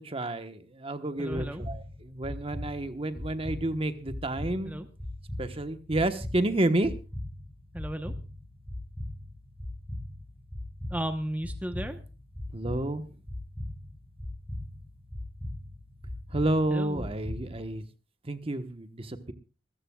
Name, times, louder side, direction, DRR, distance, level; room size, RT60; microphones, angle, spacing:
voice 1, 0.0-4.8 5.4-6.9 12.5-13.0 16.3-17.8 18.2-19.3, right 1 dB, 30° right, 9 dB, 1.2 m, -30 dB
sound 1, 1.2-17.8, left 1 dB, 15° left, 7.7 m, -40 dB
voice 2, 1.2-1.6 4.6-4.9 7.7-8.1 10.9-12.0 16.7-17.1, equal, 10° right, 7 dB, 1.0 m, -34 dB
26.0 x 14.5 x 2.3 m, 0.33 s
head